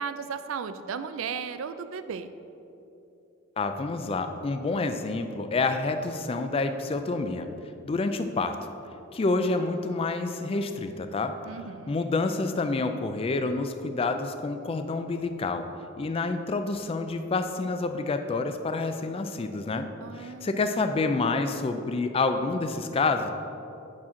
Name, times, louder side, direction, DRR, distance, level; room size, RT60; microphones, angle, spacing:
voice 1, 0.0-2.3 11.4-12.0 20.0-20.5, right 6 dB, 65° right, 11 dB, 0.4 m, -35 dB
voice 2, 3.6-7.5 7.8-8.6 9.1-11.4 11.9-15.6 16.0-19.9 20.1-23.3, left 3 dB, 25° left, 8 dB, 0.3 m, -28 dB
8.5 x 5.9 x 3.7 m, 2.9 s
head